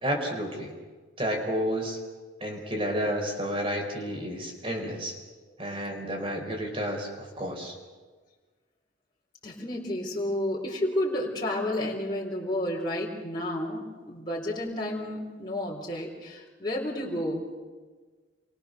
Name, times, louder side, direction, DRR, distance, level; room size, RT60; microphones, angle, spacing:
voice 1, 0.0-0.7 1.2-2.0 2.4-5.2 5.6-7.7, equal, 30° right, 1 dB, 4.7 m, -31 dB
voice 2, 9.4-17.5, left 1 dB, 25° left, -4 dB, 4.1 m, -31 dB
28.5 x 23.5 x 6.7 m, 1.4 s
head